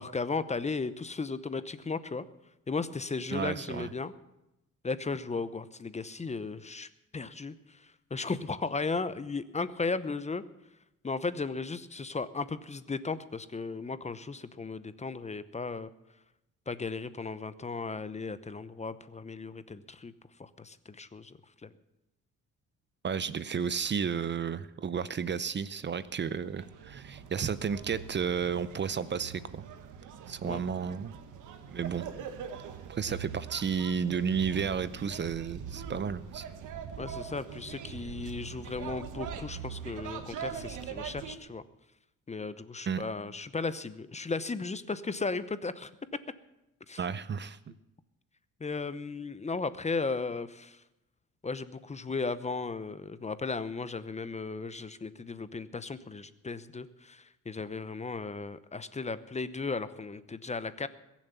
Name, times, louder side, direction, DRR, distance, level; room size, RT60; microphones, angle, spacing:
voice 1, 0.0-2.2 2.7-4.1 4.8-10.4 11.0-15.9 16.7-20.1 20.4-21.7 30.4-30.6 37.0-41.6 42.3-45.9 46.9-47.0 48.6-50.8 51.4-60.9, left 4 dB, 20° left, 14 dB, 0.8 m, -36 dB
voice 2, 3.3-3.9 23.0-29.7 30.3-31.1 31.7-32.1 32.9-36.4 42.9-43.0 47.0-47.6, right 6 dB, 35° right, 15 dB, 0.7 m, -32 dB
sound 1, 25.9-41.4, right 7 dB, 85° right, 1.5 m, -42 dB
21.5 x 7.3 x 6.9 m, 0.92 s
cardioid pair, 90°, 30 cm